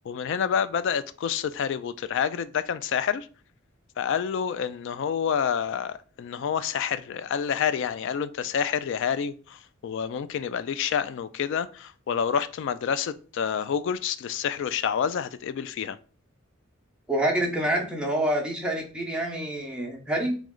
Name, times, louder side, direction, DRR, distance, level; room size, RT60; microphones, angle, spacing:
voice 1, 0.1-3.3 4.0-16.0, left 7 dB, 60° left, 0.3 m, -28 dB
voice 2, 17.1-20.4, right 1 dB, 5° right, 0.8 m, -27 dB
3.1 x 3.1 x 3.7 m
head